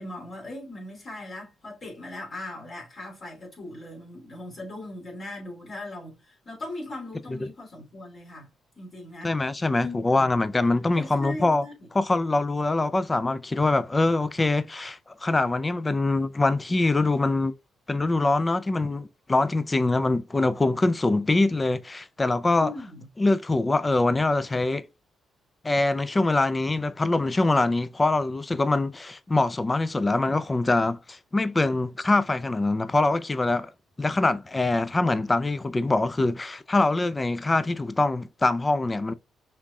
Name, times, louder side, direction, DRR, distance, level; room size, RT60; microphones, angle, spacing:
voice 1, 0.0-8.5 8.7-9.4 9.7-10.2 10.9-11.9 22.6-23.1, left 2 dB, 45° left, 3.1 m, -39 dB
voice 2, 9.2-11.6 11.9-17.5 17.9-22.7 23.2-24.9 25.6-33.7 34.0-39.1, left 2 dB, 20° left, 0.4 m, -24 dB
5.7 x 3.6 x 2.3 m
cardioid pair, 90°, 0 cm